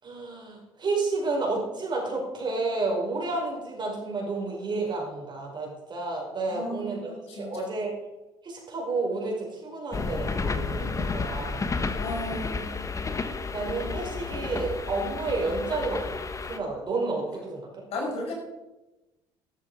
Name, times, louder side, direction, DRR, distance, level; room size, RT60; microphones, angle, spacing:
voice 1, 0.0-7.9 8.4-11.6 13.5-16.2 16.5-17.9, right 3 dB, 40° right, -1 dB, 5.5 m, -31 dB
voice 2, 6.5-7.7 12.0-12.7 17.9-18.3, left 1 dB, 60° left, -1 dB, 6.1 m, -34 dB
sound 1, 9.9-16.6, left 4 dB, 30° left, 1.3 m, -31 dB
12.5 x 12.5 x 4.9 m, 1.0 s
hypercardioid pair, 65°, 11 cm